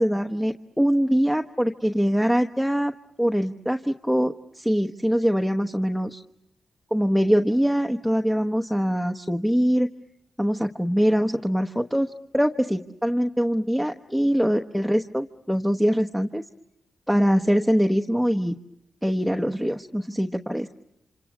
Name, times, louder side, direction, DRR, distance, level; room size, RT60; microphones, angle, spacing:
voice 1, 0.0-2.9 3.2-6.2 6.9-9.9 10.4-16.4 17.1-18.5 19.0-20.7, equal, ahead, 4 dB, 1.1 m, -23 dB
28.5 x 26.5 x 7.1 m, 0.83 s
supercardioid pair, 45°, 0 cm